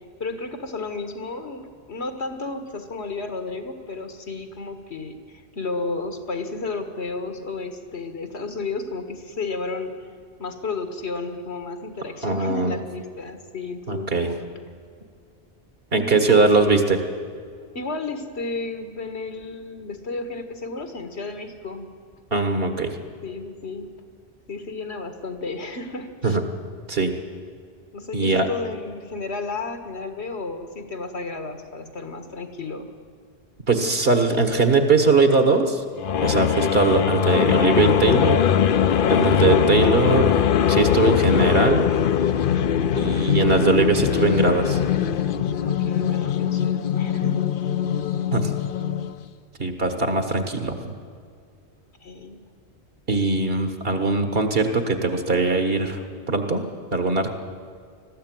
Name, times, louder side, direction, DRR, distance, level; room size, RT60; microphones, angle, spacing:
voice 1, 0.2-10.0 10.4-14.4 15.9-16.8 17.8-21.9 23.2-23.9 24.5-26.4 27.9-32.9 45.6-47.4 52.0-52.4, left 3 dB, 75° left, 7 dB, 1.9 m, -32 dB
voice 2, 12.2-12.7 13.9-14.3 15.9-17.0 22.3-22.9 26.2-26.4 26.9-27.1 28.1-28.5 33.7-35.8 36.2-38.4 39.1-41.9 43.0-44.8 48.3-48.5 49.6-50.9 53.1-56.6 56.9-57.3, right 3 dB, 60° right, 6 dB, 1.9 m, -21 dB
sound 1, 36.0-49.2, left 8 dB, 60° left, 0.8 m, -21 dB
20.5 x 14.0 x 9.3 m, 2.1 s
omnidirectional pair, 1.1 m